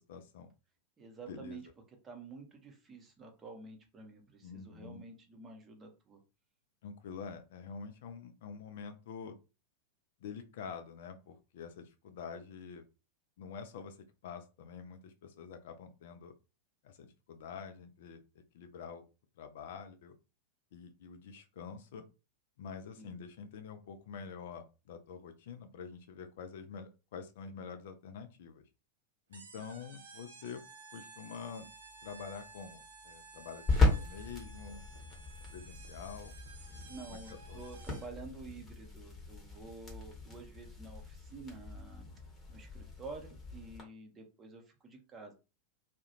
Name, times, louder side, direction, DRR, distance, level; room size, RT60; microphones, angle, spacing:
voice 1, 0.1-0.5 1.3-1.6 4.4-5.0 6.8-9.4 10.2-12.9 13.4-16.3 16.8-19.1 19.4-20.2 20.7-22.0 22.6-28.6 29.3-30.6 30.9-31.7 32.0-34.8 35.5-36.4 37.1-37.6, left 6 dB, 55° left, 8 dB, 0.3 m, -47 dB
voice 2, 1.0-1.6 1.9-6.2 23.0-23.1 36.9-42.1 42.5-45.3, right 3 dB, 20° right, 3 dB, 0.7 m, -49 dB
sound 1, 29.3-38.2, right 4 dB, 70° right, 0.5 m, -54 dB
sound 2, 31.6-43.8, left 2 dB, 20° left, 1.0 m, -37 dB
2.3 x 2.1 x 2.9 m, 0.30 s
figure-of-eight pair, 90°, 0 cm